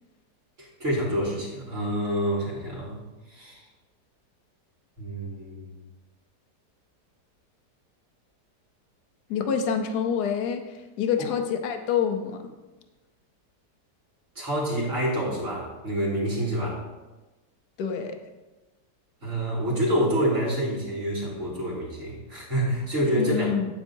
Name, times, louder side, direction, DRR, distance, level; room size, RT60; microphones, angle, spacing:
voice 1, 0.6-3.0 3.3-3.6 5.0-5.8 11.2-11.3 14.4-16.8 19.2-23.5, equal, 45° right, -4 dB, 2.3 m, -27 dB
voice 2, 9.3-12.5 17.8-18.2 23.2-23.7, left 7 dB, 75° left, 6 dB, 1.3 m, -27 dB
8.6 x 8.1 x 2.7 m, 1.1 s
omnidirectional pair, 1.8 m